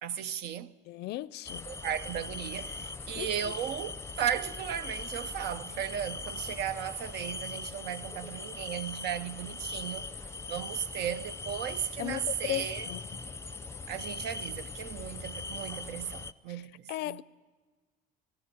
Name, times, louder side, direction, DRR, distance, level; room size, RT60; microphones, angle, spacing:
voice 1, 0.0-0.8 1.7-10.1 10.5-12.9 13.9-17.2, right 9 dB, 80° right, 0.7 m, -36 dB
voice 2, 0.9-1.7 2.8-2.9 3.1-3.6 12.0-13.0 16.5-16.6 16.9-17.2, left 16 dB, 80° left, 0.5 m, -36 dB
sound 1, 1.5-16.3, left 3 dB, 15° left, 0.5 m, -40 dB
17.5 x 15.0 x 9.9 m
cardioid pair, 110°, 17 cm